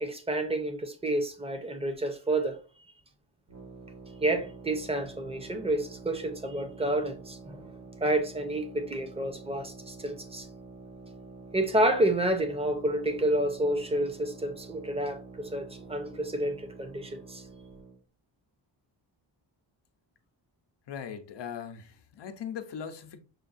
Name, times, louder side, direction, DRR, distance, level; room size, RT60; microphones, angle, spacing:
voice 1, 0.0-2.6 4.2-7.7 8.0-10.5 11.5-17.5, right 1 dB, 15° right, 0.7 m, -29 dB
sound 1, 3.5-18.0, right 3 dB, 65° right, 1.6 m, -48 dB
voice 2, 20.9-23.2, left 7 dB, 65° left, 0.7 m, -39 dB
6.4 x 2.3 x 2.5 m
wide cardioid pair, 115°, 45 cm